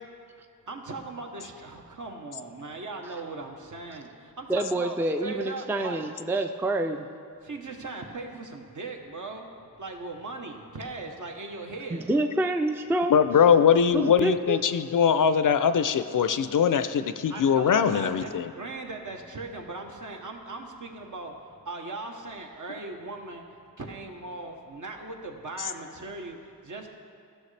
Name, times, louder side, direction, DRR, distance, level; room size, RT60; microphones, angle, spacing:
voice 1, 0.7-6.0 7.4-9.5 9.8-12.1 17.3-18.3 18.6-21.3 21.6-23.4 23.8-26.9, right 3 dB, 55° right, 2 dB, 1.0 m, -39 dB
voice 2, 4.5-7.1 11.9-13.2 13.9-14.6, right 1 dB, 5° right, 6 dB, 0.4 m, -27 dB
voice 3, 13.1-18.5, left 7 dB, 60° left, 11 dB, 0.4 m, -21 dB
13.5 x 6.4 x 3.3 m, 2.4 s
cardioid pair, 60°, 35 cm